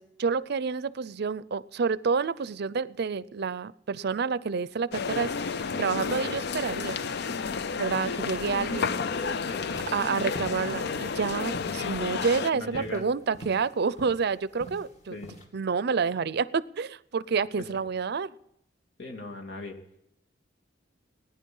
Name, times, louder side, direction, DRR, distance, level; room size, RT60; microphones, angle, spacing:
voice 1, 0.0-7.0 7.8-9.0 9.9-15.2 15.5-18.3, right 5 dB, 60° right, 18 dB, 0.5 m, -29 dB
sound 1, 4.9-12.5, left 5 dB, 60° left, 0.5 m, -31 dB
sound 2, 9.7-15.4, right 1 dB, 40° left, 2.5 m, -44 dB
voice 2, 12.5-13.0 15.1-15.3 19.0-19.8, left 3 dB, 75° left, 2 dB, 2.7 m, -38 dB
19.0 x 10.0 x 5.4 m, 0.81 s
head